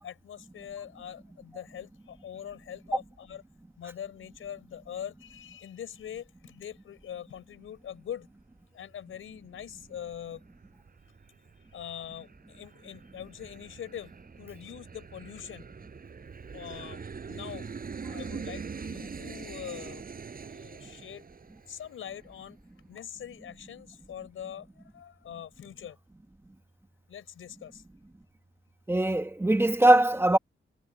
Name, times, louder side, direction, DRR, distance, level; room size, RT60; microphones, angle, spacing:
voice 1, 0.0-3.4 3.8-8.3 8.7-10.4 11.7-14.1 14.4-15.7 16.5-17.7 18.1-20.1 20.5-21.3 21.7-22.6 22.9-26.0 27.1-27.8, left 9 dB, 85° left, 5.9 m, -43 dB
Aircraft, 9.3-22.5, right 5 dB, 45° right, 7.4 m, -44 dB
voice 2, 28.9-30.4, right 1 dB, 10° right, 1.3 m, -21 dB
wide cardioid pair, 115°, 21 cm